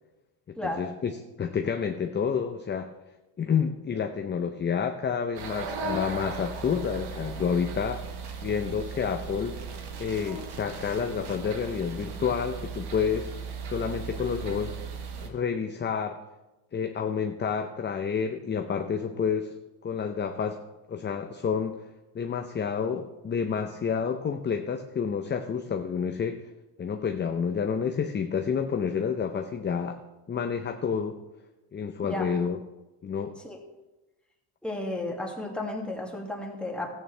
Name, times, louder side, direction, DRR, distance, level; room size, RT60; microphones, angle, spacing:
voice 1, 0.5-2.9 3.4-8.0 8.4-9.6 10.0-13.3 13.7-14.8 15.2-16.2 16.7-19.5 19.8-20.6 20.9-21.9 22.1-26.5 26.8-30.0 30.3-31.2 31.7-32.6 33.0-33.3, left 6 dB, 25° left, 6 dB, 0.6 m, -29 dB
sound 1, 5.4-15.3, right 5 dB, 60° right, 1.6 m, -37 dB
voice 2, 34.6-36.9, left 1 dB, ahead, -1 dB, 2.1 m, -33 dB
14.0 x 8.8 x 3.3 m, 1.0 s
cardioid pair, 105°, 45 cm